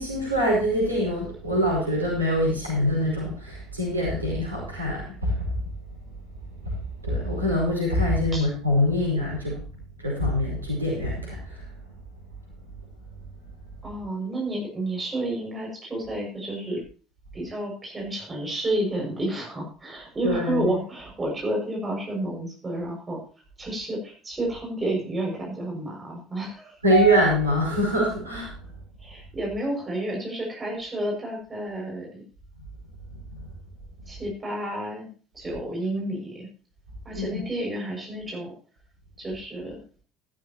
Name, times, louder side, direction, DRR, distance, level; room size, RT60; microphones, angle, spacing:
voice 1, 0.0-5.5 6.6-6.7 7.0-9.6 10.0-11.6 20.2-20.7 26.8-28.5 33.3-33.4 37.1-37.4, equal, 85° right, -4 dB, 5.1 m, -24 dB
voice 2, 13.8-16.8 17.3-23.2 23.6-26.8 29.0-32.2 34.1-35.1 35.3-36.5 37.0-38.5 39.2-39.8, right 1 dB, 20° right, 0 dB, 6.5 m, -30 dB
14.0 x 13.0 x 3.0 m, 0.37 s
figure-of-eight pair, 60°, 0 cm